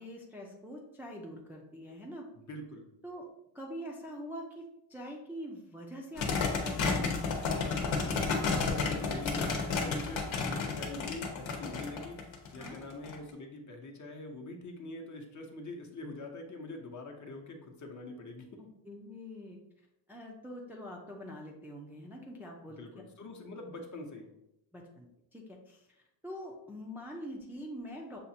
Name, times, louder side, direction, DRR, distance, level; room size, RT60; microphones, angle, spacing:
voice 1, 0.0-2.3 3.0-3.3 3.5-7.1 12.6-12.8 18.6-19.6 20.1-22.8 24.7-25.1 25.3-28.2, equal, 5° right, -1 dB, 0.4 m, -44 dB
voice 2, 2.3-2.9 8.5-12.2 12.5-18.6 22.7-24.3, left 2 dB, 40° left, 2 dB, 0.8 m, -44 dB
sound 1, 6.2-13.1, left 4 dB, 75° left, 1.0 m, -31 dB
6.5 x 2.4 x 2.8 m, 0.84 s
cardioid pair, 115°, 46 cm